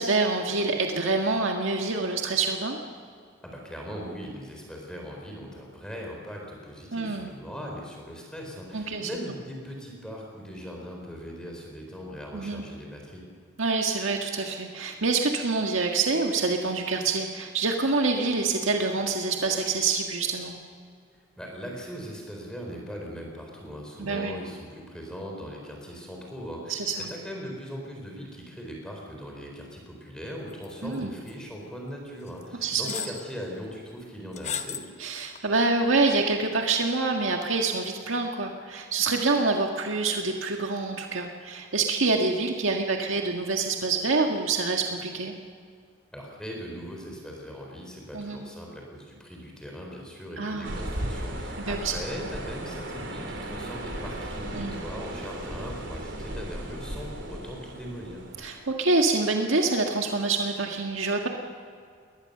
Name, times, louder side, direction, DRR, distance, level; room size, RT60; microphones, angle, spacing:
voice 1, 0.0-2.8 6.9-7.3 8.7-9.1 12.3-12.6 13.6-20.5 24.0-24.3 26.7-27.1 30.8-31.1 32.6-32.8 35.0-45.3 48.1-48.4 50.4-50.8 51.7-51.9 54.5-54.8 58.4-61.3, right 3 dB, 90° right, 2 dB, 1.8 m, -26 dB
voice 2, 3.4-13.2 21.4-34.8 46.1-58.2, equal, 5° left, 0 dB, 4.2 m, -39 dB
sound 1, 30.6-31.0 31.3-31.4 32.3-32.4 32.9-33.2 34.3-34.9 35.3-35.4, left 8 dB, 35° left, 1.0 m, -34 dB
sound 2, 50.6-58.7, right 1 dB, 70° right, 3.3 m, -36 dB
22.0 x 19.5 x 6.8 m, 2.2 s
head